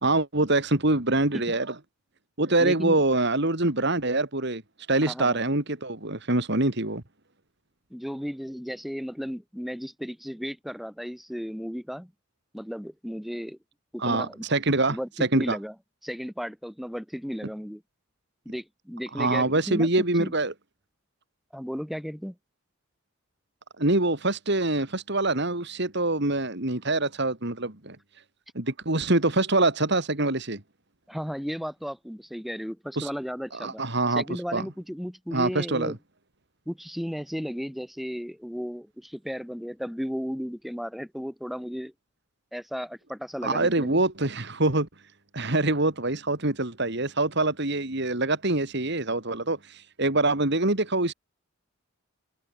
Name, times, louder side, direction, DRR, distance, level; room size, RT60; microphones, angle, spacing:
voice 1, 0.0-1.7 2.4-4.6 4.9-7.0 14.0-15.6 19.2-20.5 23.8-28.0 28.5-30.6 33.0-33.1 33.5-34.2 34.5-34.6 35.3-35.9 43.4-44.9 45.3-51.1, right 2 dB, 55° right, 2.8 m, -25 dB
voice 2, 2.6-3.0 5.0-5.4 7.9-12.1 12.5-13.6 13.9-14.5 14.9-15.7 16.0-17.8 18.4-20.3 21.5-22.4 31.1-33.8 34.1-36.0 36.7-41.9 42.5-44.0, equal, ahead, 6.3 m, -34 dB
head